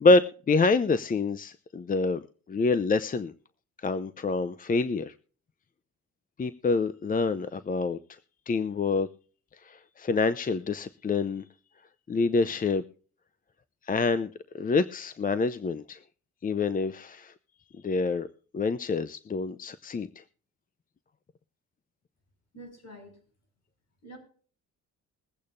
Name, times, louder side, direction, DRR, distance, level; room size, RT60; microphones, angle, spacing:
voice 1, 0.0-2.2 2.5-3.3 3.8-5.1 6.4-8.0 8.5-9.1 9.6-11.4 12.1-12.8 13.8-16.0 16.4-17.3 17.8-18.3 18.5-20.2, left 3 dB, 30° left, 14 dB, 0.6 m, -26 dB
voice 2, 22.5-23.2 24.0-24.2, right 1 dB, 60° left, 4 dB, 6.1 m, -46 dB
22.0 x 8.5 x 2.6 m, 0.42 s
cardioid pair, 90°, 30 cm